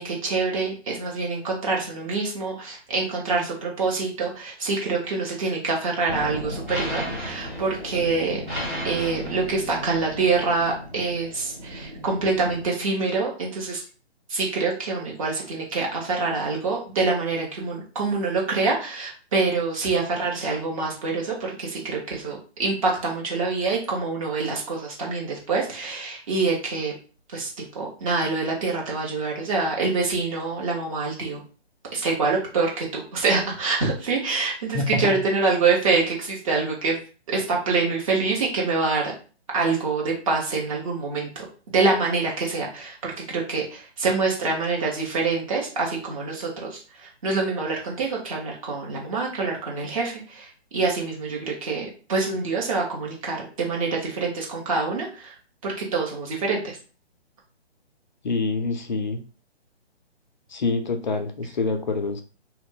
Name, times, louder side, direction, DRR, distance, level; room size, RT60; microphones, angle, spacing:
voice 1, 0.0-8.4 8.8-13.8 14.3-26.9 27.3-27.5 27.7-31.4 31.9-37.0 37.3-39.0 39.5-55.3 55.6-56.8, right 4 dB, 30° right, -2 dB, 1.0 m, -26 dB
sound 1, 6.1-12.7, equal, 15° right, 0.6 m, -34 dB
voice 2, 34.7-35.2 58.2-59.2 60.5-62.2, left 3 dB, 45° left, 6 dB, 0.5 m, -26 dB
2.4 x 2.1 x 3.7 m, 0.37 s
figure-of-eight pair, 145°, 34 cm